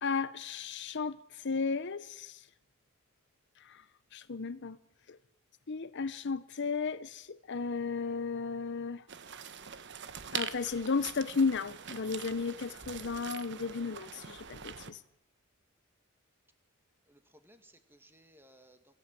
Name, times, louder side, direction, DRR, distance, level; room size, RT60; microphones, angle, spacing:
voice 1, 0.0-2.5 3.6-3.8 4.1-4.8 5.1-5.2 5.7-9.1 10.3-15.0, left 4 dB, 55° left, 0.7 m, -34 dB
sound 1, 9.1-14.9, right 8 dB, 55° right, 1.2 m, -43 dB
voice 2, 17.1-18.9, right 1 dB, 10° right, 2.1 m, -61 dB
23.0 x 16.5 x 9.0 m
head